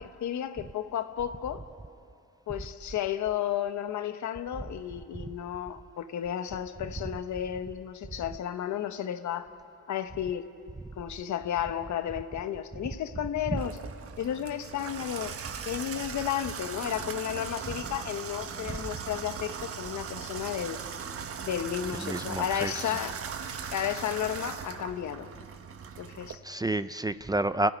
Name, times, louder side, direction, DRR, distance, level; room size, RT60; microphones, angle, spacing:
voice 1, 0.0-1.6 2.5-9.5 9.9-10.5 11.0-13.8 14.2-15.3 15.7-20.8 21.4-23.2 23.7-25.3 26.0-26.4, left 10 dB, 70° left, 10 dB, 1.2 m, -33 dB
Water tap faucet / Bathtub (filling or washing), 13.6-26.4, right 7 dB, 50° right, 1.3 m, -39 dB
voice 2, 22.0-22.8 26.4-27.7, right 2 dB, 15° right, 13 dB, 0.5 m, -29 dB
30.0 x 15.0 x 9.7 m, 2.6 s
cardioid pair, 90°, 30 cm